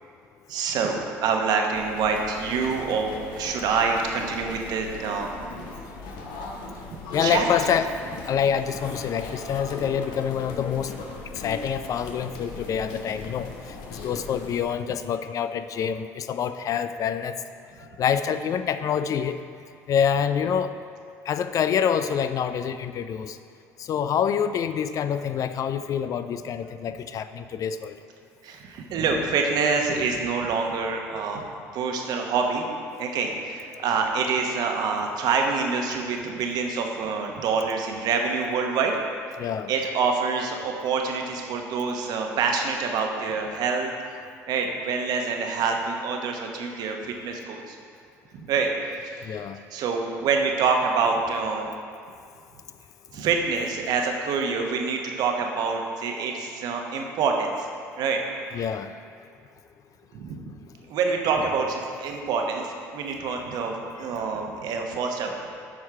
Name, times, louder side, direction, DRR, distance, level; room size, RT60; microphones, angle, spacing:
voice 1, 0.5-5.3 7.2-7.4 28.4-31.4 31.7-32.7 33.0-39.0 39.7-43.9 44.5-47.8 48.3-49.2 49.7-51.7 53.1-57.7 58.0-58.2 60.1-60.4 60.9-65.3, right 5 dB, 60° right, 2 dB, 0.9 m, -26 dB
sound 1, 1.7-14.6, left 3 dB, 70° left, 1.0 m, -39 dB
voice 2, 7.1-7.9 8.3-10.9 11.4-13.5 13.9-17.3 18.0-19.4 19.9-20.7 21.3-23.4 23.9-27.9 39.4-39.7 49.3-49.6 58.5-58.9, left 8 dB, 50° left, 11 dB, 0.4 m, -26 dB
7.6 x 4.7 x 4.7 m, 2.2 s
hypercardioid pair, 70°, 8 cm